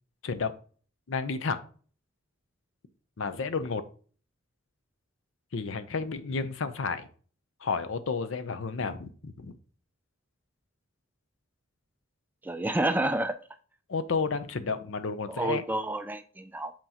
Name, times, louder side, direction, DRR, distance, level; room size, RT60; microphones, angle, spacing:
voice 1, 1.1-1.6 3.2-3.8 5.5-7.1 7.6-9.5 13.9-15.6, left 4 dB, 65° left, 11 dB, 0.6 m, -31 dB
voice 2, 12.4-13.4 15.3-16.7, right 1 dB, 10° right, 9 dB, 0.3 m, -29 dB
7.7 x 4.5 x 2.8 m, 0.42 s
head